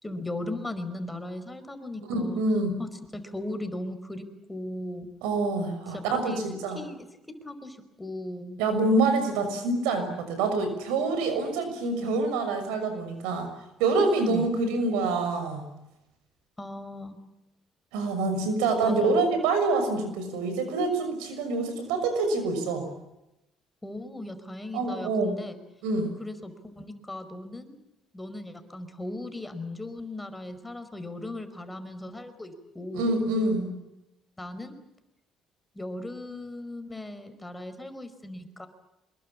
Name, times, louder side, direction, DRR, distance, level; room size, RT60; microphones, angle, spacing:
voice 1, 0.0-2.4 2.8-5.1 5.9-6.4 6.7-7.0 7.4-8.6 14.3-14.5 16.6-17.2 18.8-19.3 23.8-25.6 26.2-27.8 28.1-33.1 34.4-34.7 35.7-38.7, left 1 dB, 15° left, 9 dB, 5.0 m, -37 dB
voice 2, 2.1-2.7 5.2-6.8 8.6-13.5 13.8-15.6 17.9-22.9 24.7-25.3 25.8-26.1 32.9-33.7, right 3 dB, 80° right, 8 dB, 6.3 m, -26 dB
26.0 x 22.0 x 8.7 m, 0.91 s
hypercardioid pair, 65°, 0 cm